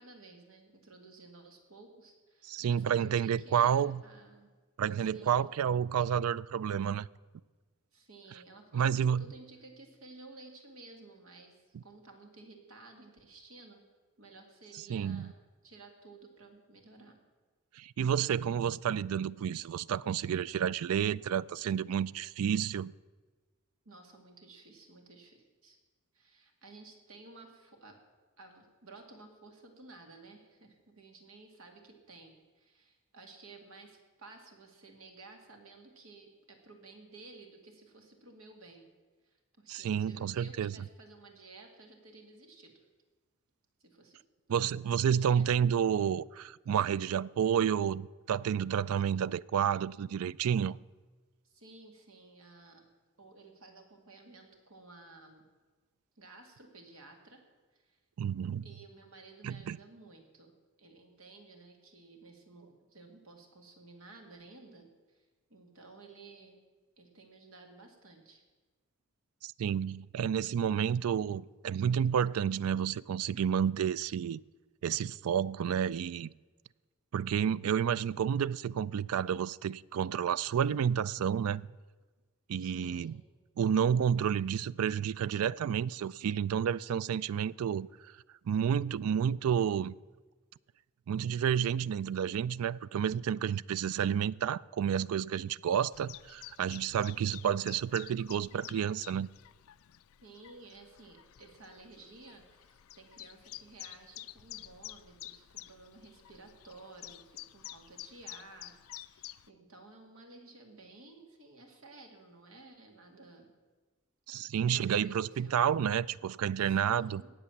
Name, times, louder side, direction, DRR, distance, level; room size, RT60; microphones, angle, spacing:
voice 1, 0.0-4.5 5.0-5.5 7.9-13.8 14.2-17.2 23.8-25.8 26.1-28.0 28.4-38.9 39.2-42.8 43.8-44.2 44.6-45.6 51.4-52.9 53.2-55.5 56.2-57.4 57.7-58.0 58.6-60.5 60.8-66.6 67.0-68.4 82.6-83.2 100.2-113.5 114.7-115.8 116.6-117.3, right 3 dB, 70° right, 2.3 m, -54 dB
voice 2, 2.5-4.0 4.8-7.1 8.7-9.3 11.7-11.8 14.9-15.3 17.8-22.9 39.7-40.7 44.5-50.8 58.2-58.7 59.4-59.8 69.4-74.4 74.8-76.3 77.1-81.7 82.5-83.2 83.6-87.9 88.5-89.9 91.1-99.3 114.3-117.2, right 8 dB, 85° right, 0.3 m, -30 dB
Chirp tweet, 95.9-109.5, left 15 dB, 75° left, 0.4 m, -50 dB
18.0 x 6.8 x 7.2 m
head